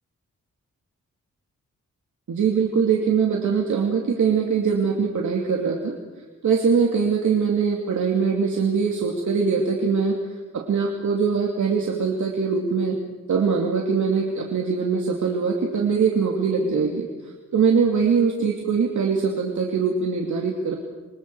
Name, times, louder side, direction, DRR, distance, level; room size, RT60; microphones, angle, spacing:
voice 1, 2.3-5.9 6.4-10.2 10.5-13.0 13.3-17.1 17.5-20.8, right 5 dB, 70° right, 0 dB, 2.7 m, -22 dB
26.5 x 24.5 x 4.8 m, 1.3 s
wide cardioid pair, 105°, 30 cm